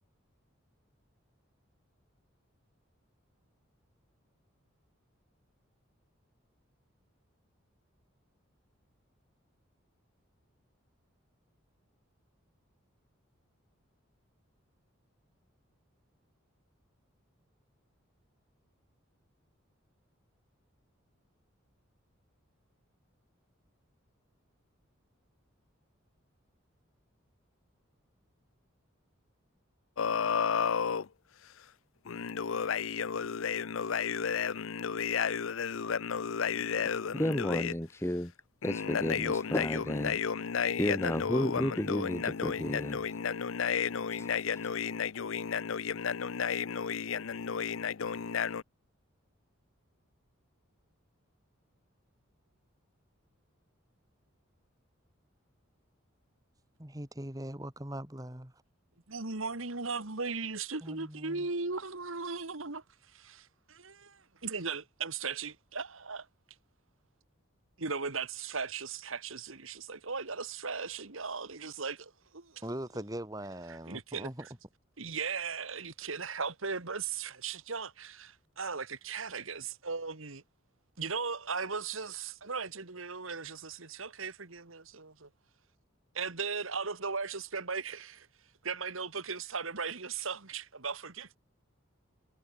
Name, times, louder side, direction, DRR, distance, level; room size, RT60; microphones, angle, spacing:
sound 1, 30.0-31.0 32.1-37.7 38.6-48.6, left 6 dB, 80° left, 0.6 m, -32 dB
voice 1, 36.4-38.3 38.6-40.4 40.8-43.0 43.9-44.7, left 1 dB, 15° left, 1.2 m, -33 dB
voice 2, 56.8-58.5 60.8-61.5 72.6-74.5, right 1 dB, 15° right, 2.6 m, -41 dB
voice 3, 59.1-62.8 63.1-66.3 67.8-72.6 73.9-74.5 75.0-80.4 81.0-85.3 86.1-88.3 88.6-91.4, right 5 dB, 80° right, 2.1 m, -37 dB
head